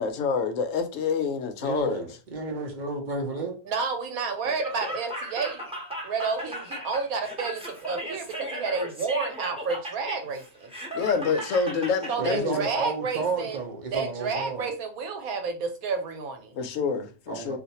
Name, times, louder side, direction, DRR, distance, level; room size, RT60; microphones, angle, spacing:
voice 1, 0.0-2.0 10.9-12.6 16.5-17.6, left 5 dB, 70° left, 0.9 m, -27 dB
voice 2, 1.6-3.6 12.2-14.7 17.3-17.6, right 4 dB, 50° right, 0.6 m, -31 dB
voice 3, 3.7-5.7 6.0-10.7 12.1-13.6 13.9-16.6, right 4 dB, 80° right, 1.2 m, -30 dB
Laughter, 4.4-12.1, equal, 5° right, 0.8 m, -36 dB
2.5 x 2.4 x 4.1 m
omnidirectional pair, 1.5 m